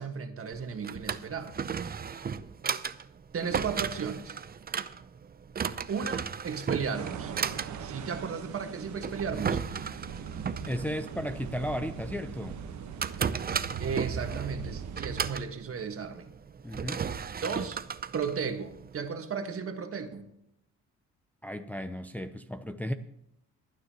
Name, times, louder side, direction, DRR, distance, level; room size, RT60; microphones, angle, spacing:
voice 1, 0.0-1.6 3.3-4.3 5.9-7.3 7.8-9.6 13.8-16.3 17.4-17.8 18.1-20.3, right 6 dB, 50° right, 6 dB, 1.6 m, -35 dB
Drawer open or close, 0.5-19.1, right 6 dB, 30° right, 0.6 m, -35 dB
sound 1, 6.9-15.3, right 6 dB, 70° right, 1.3 m, -40 dB
voice 2, 10.7-12.6 16.6-17.1 21.4-22.9, equal, 5° left, 7 dB, 0.7 m, -34 dB
28.0 x 9.5 x 3.0 m, 0.79 s
cardioid pair, 90°, 30 cm